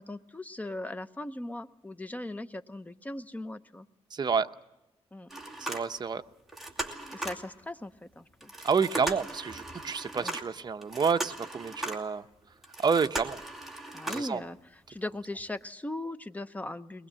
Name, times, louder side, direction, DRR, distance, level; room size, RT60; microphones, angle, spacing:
voice 1, 0.0-3.9 5.1-5.3 7.1-8.5 10.1-10.4 13.9-17.1, left 1 dB, 15° left, 11 dB, 0.8 m, -39 dB
voice 2, 4.1-4.5 5.6-6.2 8.6-12.2 12.8-13.4 14.1-14.4, right 5 dB, 40° right, 9 dB, 0.8 m, -29 dB
sound 1, 5.3-6.2 6.5-7.5 8.4-12.2 12.6-14.4 14.9-15.0 15.4-15.5, right 1 dB, 5° right, 2.6 m, -38 dB
22.5 x 20.0 x 7.5 m, 0.93 s
cardioid pair, 110°, 11 cm